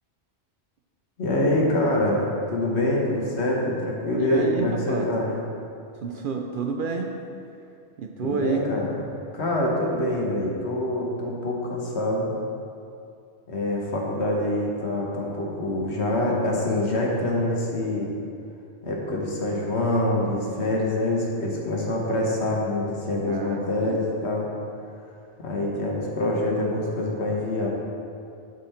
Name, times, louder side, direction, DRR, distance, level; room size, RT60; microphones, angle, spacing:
voice 1, 1.2-5.3 8.2-8.9 9.3-12.3 13.5-18.1 18.8-24.5 25.4-27.7, left 1 dB, 70° left, -2 dB, 1.5 m, -25 dB
voice 2, 4.2-5.1 6.0-7.1 8.0-8.6 23.3-24.0, right 5 dB, 60° right, 3 dB, 0.6 m, -29 dB
11.5 x 3.9 x 4.3 m, 2.5 s
omnidirectional pair, 1.2 m